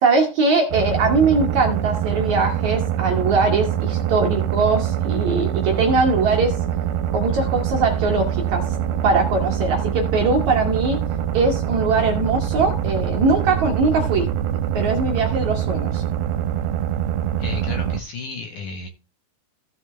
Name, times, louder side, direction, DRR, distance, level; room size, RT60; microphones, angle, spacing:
voice 1, 0.0-6.6 7.1-11.0 11.3-14.3 14.7-16.0, right 3 dB, 60° right, 2 dB, 2.2 m, -21 dB
sound 1, 0.7-18.0, right 10 dB, 75° right, 2.8 m, -24 dB
voice 2, 17.4-18.9, left 4 dB, 60° left, 4 dB, 2.3 m, -33 dB
15.5 x 6.2 x 3.3 m, 0.30 s
omnidirectional pair, 4.7 m